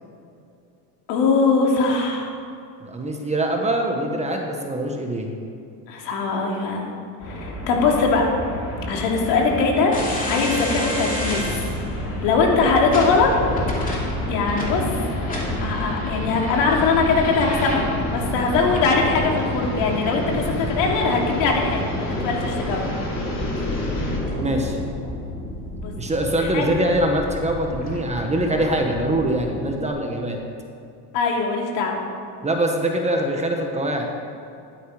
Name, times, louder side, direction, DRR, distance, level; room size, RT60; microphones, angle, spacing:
voice 1, 1.1-2.3 5.9-6.9 7.2-8.3 8.9-9.9 10.3-11.5 12.2-13.3 14.3-14.8 15.6-22.9 25.8-25.9 26.5-26.6 31.1-32.0, left 4 dB, 70° left, 0 dB, 3.1 m, -21 dB
voice 2, 2.8-5.3 24.4-24.8 26.0-30.4 32.4-34.1, right 1 dB, 15° right, 2 dB, 1.4 m, -23 dB
sound 1, 7.2-24.2, left 1 dB, 35° left, 4.1 m, -32 dB
sound 2, 9.9-29.6, left 1 dB, 20° left, 2.8 m, -29 dB
15.0 x 12.0 x 5.1 m, 2.5 s
cardioid pair, 145°, 44 cm